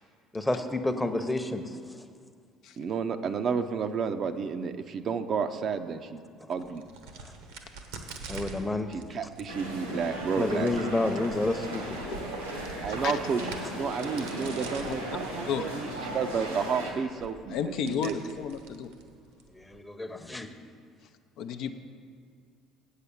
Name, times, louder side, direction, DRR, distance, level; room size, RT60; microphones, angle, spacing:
voice 1, 0.3-2.0 7.2-7.3 8.3-8.9 10.4-12.0 19.5-20.5, left 2 dB, 10° left, 7 dB, 0.8 m, -30 dB
voice 2, 2.8-6.2 6.5-6.8 8.9-10.7 12.8-18.2, right 6 dB, 45° right, 8 dB, 0.5 m, -31 dB
Crack, 6.6-19.8, right 3 dB, 70° right, 0.9 m, -47 dB
sound 1, 9.5-16.9, right 1 dB, 85° right, 1.4 m, -36 dB
voice 3, 17.5-18.9 21.4-21.7, left 7 dB, 60° left, 7 dB, 0.5 m, -32 dB
8.2 x 6.6 x 7.1 m, 2.1 s
figure-of-eight pair, 55°, 0 cm